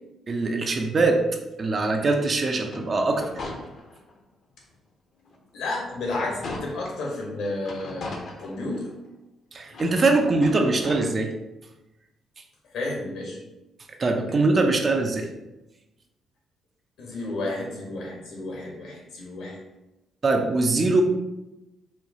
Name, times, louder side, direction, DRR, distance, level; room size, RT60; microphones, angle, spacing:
voice 1, 0.3-1.3 1.6-3.3 9.5-11.3 14.0-15.3 20.2-21.0, right 3 dB, 40° right, 4 dB, 0.5 m, -22 dB
sound 1, 2.6-4.2 4.7-4.8 5.2-7.0 7.6-9.1 9.7-11.0, left 2 dB, 55° left, 0.6 m, -40 dB
voice 2, 5.5-8.9 12.7-13.4 17.0-19.6, left 2 dB, 80° left, -2 dB, 1.1 m, -32 dB
4.4 x 2.3 x 2.7 m, 0.98 s
cardioid pair, 90°, 0 cm